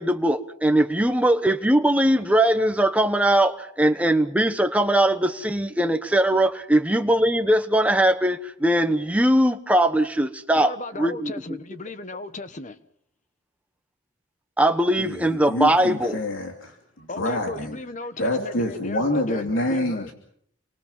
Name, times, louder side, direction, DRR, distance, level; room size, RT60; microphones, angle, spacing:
voice 1, 0.0-11.3 14.6-16.2, right 1 dB, 5° right, 1.2 m, -20 dB
voice 2, 10.5-12.8 17.1-20.1, left 2 dB, 40° left, 1.3 m, -35 dB
voice 3, 15.0-17.8 18.2-20.1, left 1 dB, 80° left, 3.0 m, -27 dB
29.0 x 24.5 x 5.6 m
head